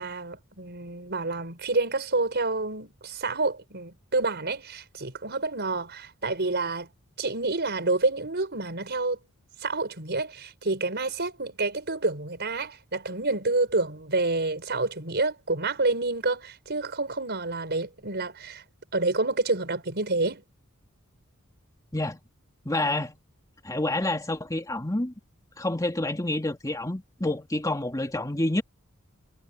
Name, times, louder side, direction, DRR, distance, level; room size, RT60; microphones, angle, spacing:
voice 1, 0.0-6.9 7.2-9.2 9.6-18.6 18.9-20.4, right 3 dB, 50° right, 5.2 m, -28 dB
voice 2, 22.7-23.2 23.6-25.1 25.6-28.6, left 1 dB, 15° left, 2.2 m, -28 dB
head